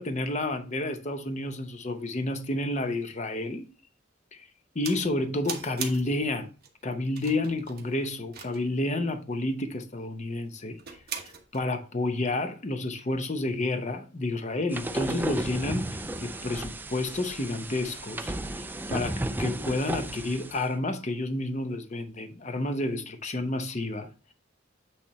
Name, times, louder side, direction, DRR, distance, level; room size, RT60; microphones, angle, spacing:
voice 1, 0.0-3.6 4.7-6.5 6.8-10.8 11.5-18.6 18.9-24.1, left 2 dB, 40° left, 0.8 m, -30 dB
sound 1, 4.8-5.1 5.4-6.2 6.6-6.7 7.2-8.8 10.8-11.6, right 7 dB, 50° right, 1.2 m, -40 dB
sound 2, 14.7-20.6, right 1 dB, 10° right, 0.4 m, -34 dB
8.6 x 3.4 x 4.2 m
head